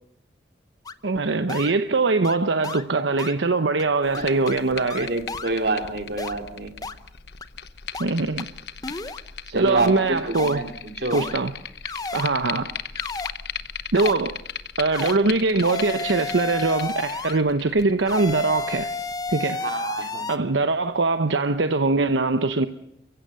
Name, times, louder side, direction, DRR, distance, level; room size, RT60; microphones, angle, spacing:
sound 1, 0.9-1.0 1.5-1.7 2.2-2.4 2.6-2.8 3.2-3.4 3.8-3.9 4.1-4.6 4.9-5.5 6.2-6.3 6.8-6.9 7.4-7.5 7.9-8.1 8.4-8.5 8.8-9.2 9.8-9.9 10.3-10.6 11.1-11.3 11.8-12.3 13.0-13.3 13.9-14.1 14.9-15.2 15.6-17.4 18.1-20.4, left 3 dB, 20° left, 0.8 m, -32 dB
voice 1, 1.0-5.1 8.0-8.5 9.5-10.6 11.1-11.5 12.1-12.7 13.9-14.4 14.8-18.9 19.3-19.6 20.3-22.7, right 3 dB, 90° right, 0.9 m, -22 dB
sound 2, 4.0-19.3, left 8 dB, 65° left, 1.0 m, -37 dB
voice 2, 4.4-6.7 9.5-11.3 12.6-12.7 19.5-20.3, right 2 dB, 65° right, 2.7 m, -28 dB
29.0 x 16.0 x 6.8 m
head